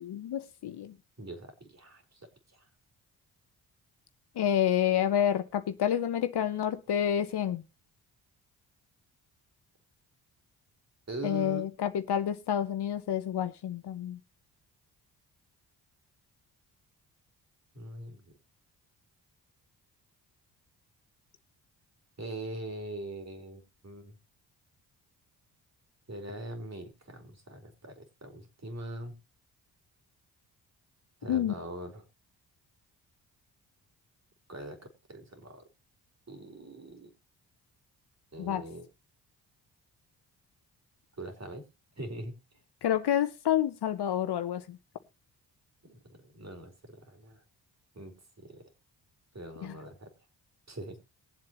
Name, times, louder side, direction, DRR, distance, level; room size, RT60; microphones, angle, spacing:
voice 1, 0.0-0.9 4.4-7.6 11.2-14.2 31.3-31.5 38.4-38.6 42.8-44.8 49.6-49.8, left 10 dB, 55° left, 1.0 m, -29 dB
voice 2, 1.2-2.2 2.5-2.6 11.1-11.6 17.7-18.2 22.2-24.2 26.1-29.1 31.2-32.0 34.5-35.6 36.3-37.1 38.3-38.9 41.2-41.6 42.0-42.3 45.8-47.4 47.9-48.7 49.3-50.1 50.7-51.0, right 1 dB, 30° right, 3.9 m, -42 dB
21.5 x 7.6 x 3.0 m
hypercardioid pair, 40°, 49 cm